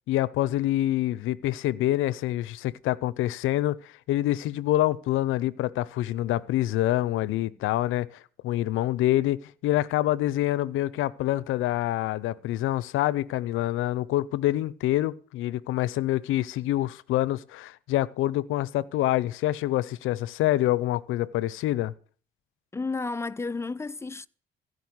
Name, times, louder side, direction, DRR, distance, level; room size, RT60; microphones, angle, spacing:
voice 1, 0.1-21.9, left 15 dB, 90° left, 0.6 m, -26 dB
voice 2, 22.7-24.3, left 3 dB, 15° left, 0.5 m, -32 dB
15.5 x 5.3 x 9.5 m
cardioid pair, 90°, 20 cm